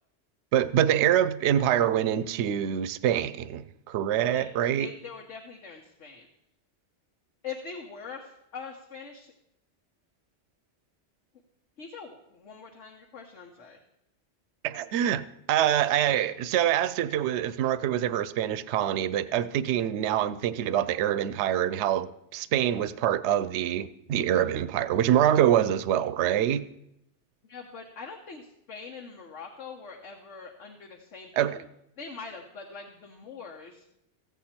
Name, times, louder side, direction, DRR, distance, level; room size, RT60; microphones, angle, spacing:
voice 1, 0.5-4.9 14.6-15.2 15.5-26.6 31.4-31.6, right 10 dB, 75° right, 15 dB, 0.8 m, -25 dB
voice 2, 4.8-6.3 7.4-9.3 11.8-13.8 27.4-31.7 32.0-33.8, left 5 dB, 85° left, 1 dB, 1.4 m, -43 dB
15.5 x 8.3 x 4.3 m, 0.80 s
omnidirectional pair, 1.2 m